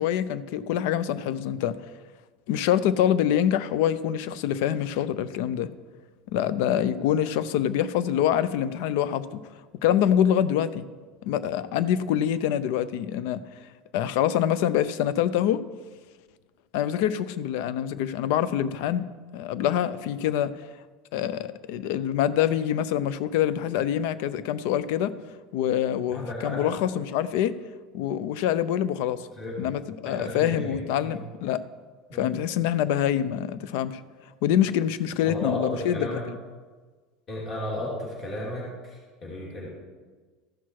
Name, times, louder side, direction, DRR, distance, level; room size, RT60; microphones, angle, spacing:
voice 1, 0.0-1.8 2.5-5.7 6.3-9.4 9.8-10.9 11.2-13.4 13.9-15.6 16.7-19.1 19.3-20.7 21.1-25.2 25.5-27.6 27.9-29.3 29.6-31.6 32.1-34.0 34.4-36.4, left 10 dB, 70° left, 16 dB, 0.5 m, -25 dB
voice 2, 26.1-26.7 29.3-29.7 30.0-31.1 32.1-32.3 35.2-36.2 37.3-39.7, left 1 dB, 30° left, -4 dB, 2.8 m, -34 dB
14.0 x 5.9 x 4.7 m, 1.4 s
supercardioid pair, 145°, 0 cm